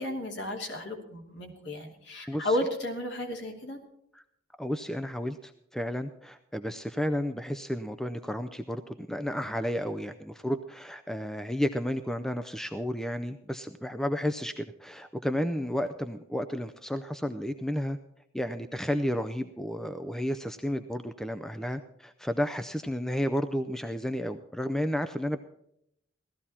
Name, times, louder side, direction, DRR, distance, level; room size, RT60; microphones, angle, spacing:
voice 1, 0.0-3.8, left 1 dB, 60° left, 2 dB, 2.8 m, -33 dB
voice 2, 2.3-2.6 4.6-18.0 18.3-25.4, equal, ahead, 8 dB, 0.5 m, -32 dB
17.0 x 14.0 x 4.3 m, 0.74 s
head